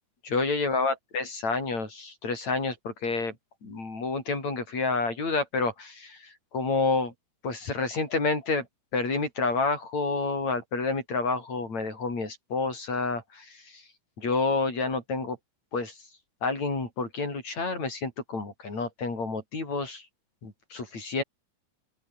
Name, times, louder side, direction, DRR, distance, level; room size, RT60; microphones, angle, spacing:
voice 1, 0.2-3.4 3.6-7.1 7.4-8.7 8.9-13.8 14.2-15.4 15.7-16.0 16.4-20.1 20.4-21.2, left 3 dB, 60° left, 8.2 m, -29 dB
open air
omnidirectional pair, 3.6 m